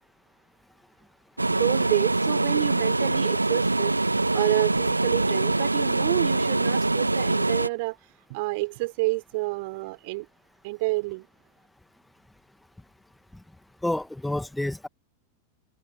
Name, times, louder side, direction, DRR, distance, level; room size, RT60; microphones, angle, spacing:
sound 1, 1.4-7.7, right 2 dB, 85° right, 1.1 m, -24 dB
voice 1, 1.5-4.0 4.3-8.0 8.3-10.3 10.6-11.3, right 25 dB, 50° right, 4.5 m, -28 dB
voice 2, 13.8-14.9, left 1 dB, 5° left, 1.7 m, -29 dB
figure-of-eight pair, 90°, 0 cm